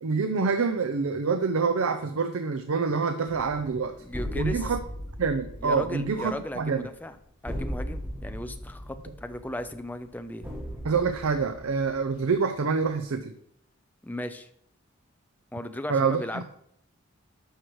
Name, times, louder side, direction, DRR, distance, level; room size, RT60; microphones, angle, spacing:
voice 1, 0.0-4.0 4.3-4.8 5.2-6.9 10.8-13.3 15.9-16.4, right 5 dB, 85° right, 9 dB, 0.5 m, -26 dB
sound 1, 3.3-12.7, equal, 10° right, 1.3 m, -38 dB
voice 2, 4.0-4.7 5.6-7.2 7.4-10.5 14.0-14.5 15.5-16.4, left 1 dB, 10° left, 8 dB, 0.5 m, -36 dB
11.5 x 6.3 x 3.1 m, 0.71 s
head